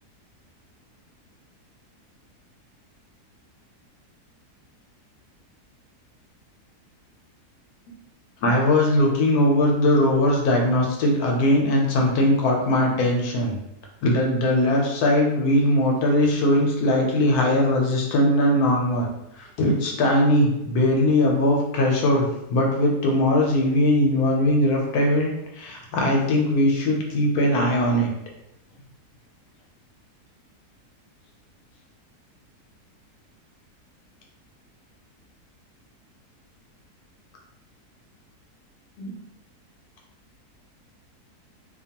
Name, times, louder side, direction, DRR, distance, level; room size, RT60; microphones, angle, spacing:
voice 1, 8.4-13.6 14.0-19.1 19.4-28.1 39.0-39.1, left 1 dB, 75° left, 0 dB, 1.1 m, -20 dB
2.7 x 2.2 x 2.7 m, 0.83 s
omnidirectional pair, 1.7 m